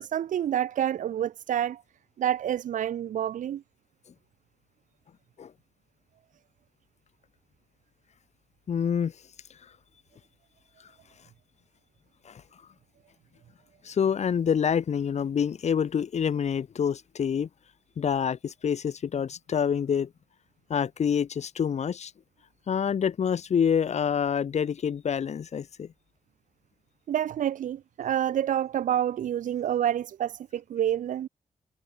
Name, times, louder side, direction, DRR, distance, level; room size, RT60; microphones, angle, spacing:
voice 1, 0.0-1.8 2.2-3.6 27.1-31.3, right 10 dB, 85° right, 0.7 m, -28 dB
voice 2, 8.7-9.1 12.3-12.4 13.8-17.5 18.0-20.1 20.7-22.1 22.7-25.9, left 7 dB, 60° left, 2.0 m, -27 dB
wide cardioid pair, 135°, 13 cm